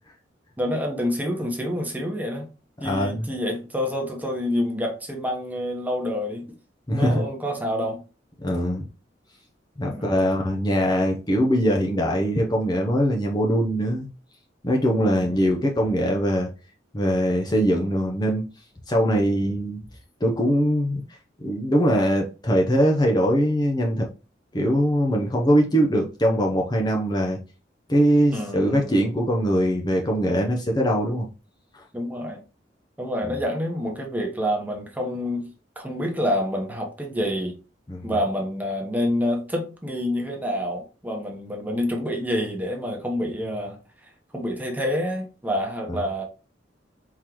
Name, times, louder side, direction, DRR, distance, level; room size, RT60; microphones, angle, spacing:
voice 1, 0.6-2.5 2.8-6.5 6.9-8.0 9.9-10.2 28.3-29.1 31.9-32.4 33.0-35.5 35.8-37.6 38.0-43.8 44.3-46.2, equal, 10° right, 1.0 m, -27 dB
voice 2, 2.8-3.3 6.9-7.2 8.4-8.9 9.8-14.1 14.6-16.5 16.9-18.5 18.9-19.8 20.2-21.0 21.4-24.1 24.5-27.4 27.9-31.3 37.9-38.1 45.9-46.0, equal, 25° left, 0.7 m, -22 dB
4.5 x 3.8 x 3.0 m
head